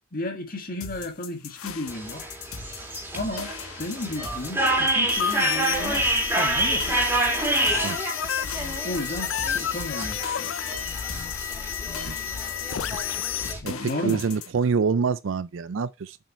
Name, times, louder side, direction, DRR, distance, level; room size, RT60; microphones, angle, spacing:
voice 1, 0.1-2.3 3.1-6.9 8.8-10.6 13.6-14.2, left 1 dB, 40° left, 1.9 m, -33 dB
sound 1, 0.8-14.5, left 6 dB, 90° left, 1.2 m, -40 dB
sound 2, 1.9-13.6, right 1 dB, 10° right, 2.8 m, -28 dB
sound 3, 5.1-13.5, left 9 dB, 65° left, 0.5 m, -31 dB
voice 2, 14.0-16.2, right 5 dB, 60° right, 0.4 m, -25 dB
7.4 x 5.7 x 4.3 m
head